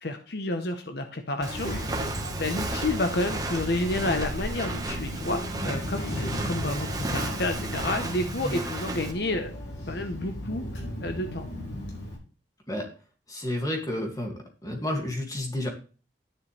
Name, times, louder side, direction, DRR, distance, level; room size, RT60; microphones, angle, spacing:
voice 1, 0.0-1.7 2.3-9.5 9.9-10.6 11.0-11.4, left 2 dB, 60° left, 6 dB, 1.2 m, -30 dB
Child speech kid speaking, 1.4-12.2, left 1 dB, 80° left, 4.6 m, -37 dB
Walk footsteps, 1.4-9.1, right 2 dB, 20° right, 1.6 m, -33 dB
voice 2, 13.3-14.3 14.6-15.7, left 1 dB, 20° left, 2 dB, 2.5 m, -30 dB
11.5 x 10.5 x 3.5 m, 0.37 s
head